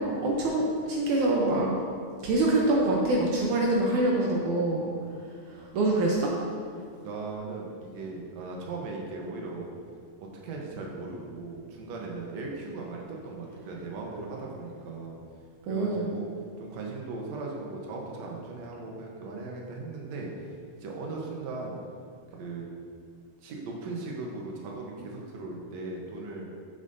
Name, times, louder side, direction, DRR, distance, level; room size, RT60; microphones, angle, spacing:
voice 1, 0.0-1.7 2.2-4.9 5.5-6.3 15.7-16.1, right 2 dB, 90° right, -2 dB, 1.7 m, -25 dB
voice 2, 4.8-5.3 7.0-9.7 10.2-15.2 15.7-16.3 16.6-20.3 20.8-21.8 22.3-22.7 23.4-26.4, right 3 dB, 70° right, -1 dB, 1.6 m, -38 dB
11.0 x 7.2 x 2.7 m, 2.2 s
omnidirectional pair, 4.6 m